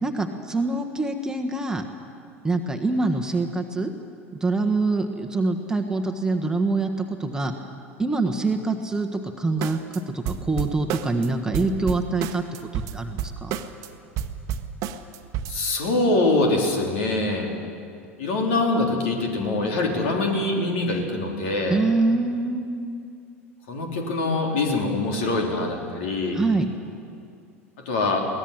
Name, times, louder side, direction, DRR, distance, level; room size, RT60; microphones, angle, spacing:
voice 1, 0.0-1.8 2.4-3.9 4.4-7.6 8.0-12.4 12.7-13.6 21.7-23.0 26.3-26.7, right 3 dB, 10° right, 3 dB, 1.5 m, -25 dB
sound 1, 9.6-10.0 10.3-11.3 11.5-13.9 14.2-15.6, right 9 dB, 45° right, 1.2 m, -30 dB
voice 2, 15.5-17.5 18.2-21.8 23.7-26.4 27.8-28.3, left 2 dB, 60° left, 1 dB, 3.7 m, -24 dB
23.0 x 18.0 x 7.5 m, 2.4 s
figure-of-eight pair, 80°, 7 cm